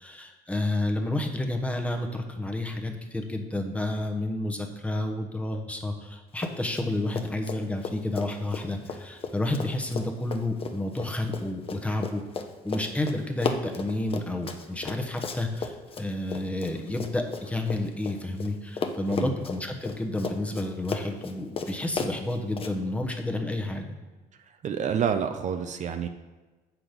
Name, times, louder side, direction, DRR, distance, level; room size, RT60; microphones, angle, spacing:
voice 1, 0.0-12.2 12.6-24.0, left 1 dB, 10° left, 3 dB, 1.0 m, -30 dB
Run, 6.3-6.9 7.1-18.5 18.8-22.7, left 4 dB, 35° left, 0.7 m, -35 dB
voice 2, 24.6-26.1, right 7 dB, 45° right, 7 dB, 0.6 m, -28 dB
7.8 x 6.0 x 5.1 m, 1.2 s
cardioid pair, 110°, 17 cm